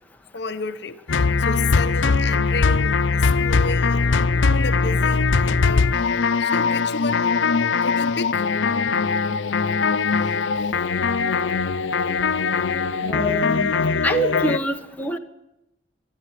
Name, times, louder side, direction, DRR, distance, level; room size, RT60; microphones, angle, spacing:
voice 1, 0.3-6.1 6.4-7.3 7.7-8.5 8.9-9.0 10.2-10.3 10.6-11.1, left 4 dB, 60° left, 0.9 m, -32 dB
sound 1, 1.1-14.6, left 4 dB, 90° left, 0.7 m, -21 dB
voice 2, 13.0-13.7 14.0-15.2, right 1 dB, 10° left, 1.3 m, -25 dB
23.0 x 12.0 x 10.0 m
head